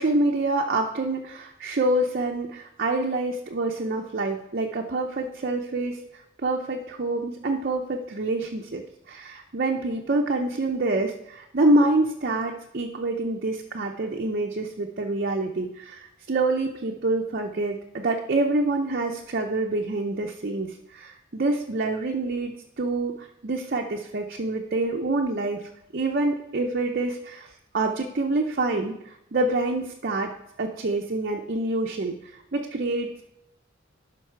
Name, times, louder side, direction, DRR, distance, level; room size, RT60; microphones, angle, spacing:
voice 1, 0.0-6.0 6.4-27.5 27.7-30.3 30.6-33.3, right 2 dB, 50° right, 1 dB, 0.7 m, -26 dB
12.0 x 5.3 x 4.5 m, 0.79 s
head